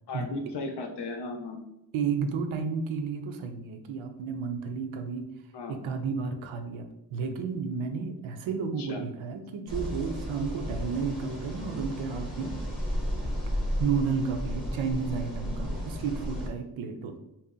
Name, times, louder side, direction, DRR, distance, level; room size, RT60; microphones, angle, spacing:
voice 1, 0.1-1.6 5.5-5.8 8.8-9.0, left 3 dB, 60° left, 4 dB, 0.6 m, -36 dB
voice 2, 1.9-5.3 5.7-12.6 13.8-17.2, right 5 dB, 85° right, 7 dB, 0.6 m, -32 dB
sound 1, 9.7-16.5, equal, ahead, 0.8 m, -33 dB
2.7 x 2.0 x 3.6 m, 0.88 s
wide cardioid pair, 120°, 46 cm